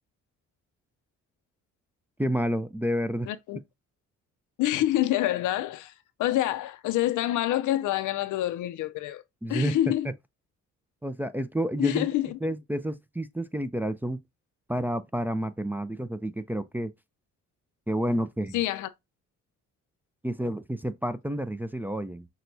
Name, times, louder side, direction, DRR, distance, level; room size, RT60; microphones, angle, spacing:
voice 1, 2.2-3.3 9.4-9.8 11.0-12.1 12.4-14.2 14.7-16.9 17.9-18.6 20.2-22.3, right 1 dB, 5° right, 0.3 m, -29 dB
voice 2, 3.3-3.6 4.6-5.9 6.2-9.2 9.5-10.1 11.8-12.4 18.5-18.9, left 14 dB, 80° left, 0.5 m, -27 dB
6.0 x 2.2 x 2.6 m
cardioid pair, 90°, 30 cm